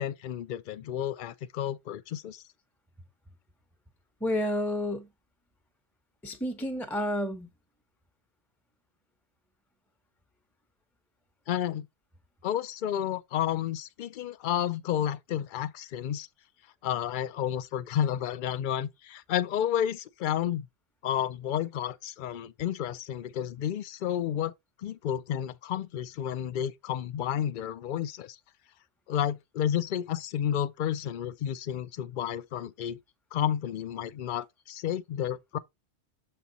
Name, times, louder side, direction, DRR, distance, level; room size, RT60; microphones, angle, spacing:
voice 1, 0.0-2.4 11.5-11.9 12.4-16.3 16.8-20.7 21.0-24.5 24.8-28.4 29.1-33.0 33.3-35.6, left 10 dB, 60° left, 0.6 m, -31 dB
voice 2, 4.2-5.1 6.2-7.5, left 1 dB, ahead, 0.8 m, -30 dB
7.2 x 4.3 x 4.0 m
omnidirectional pair, 1.1 m